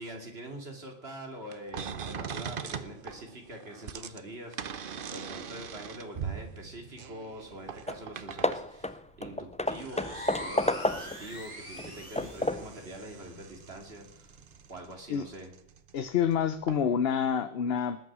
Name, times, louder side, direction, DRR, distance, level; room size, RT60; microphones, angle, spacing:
voice 1, 0.0-14.3 14.7-15.5, right 1 dB, 85° right, 3 dB, 2.9 m, -44 dB
sound 1, 1.5-8.7 9.4-16.4 16.6-16.9, right 7 dB, 60° right, 1.0 m, -42 dB
Hammer / Wood, 7.5-7.6 7.9-8.1 8.4-11.3 11.8-12.8, left 1 dB, 10° left, 0.4 m, -31 dB
sound 2, 9.8-12.5, left 1 dB, 30° left, 2.8 m, -42 dB
voice 2, 15.9-18.0, left 8 dB, 75° left, 11 dB, 1.0 m, -27 dB
20.0 x 9.0 x 6.2 m, 0.79 s
omnidirectional pair, 1.0 m